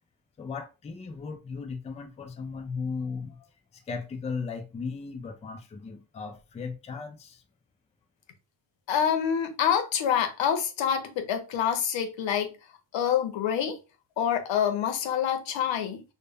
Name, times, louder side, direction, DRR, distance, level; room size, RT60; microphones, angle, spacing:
voice 1, 0.4-7.4, left 5 dB, 15° left, 0.3 m, -37 dB
voice 2, 8.9-12.5 12.9-13.8 14.2-16.0, left 8 dB, 85° left, 0.7 m, -26 dB
2.1 x 2.1 x 3.3 m
cardioid pair, 85°, 44 cm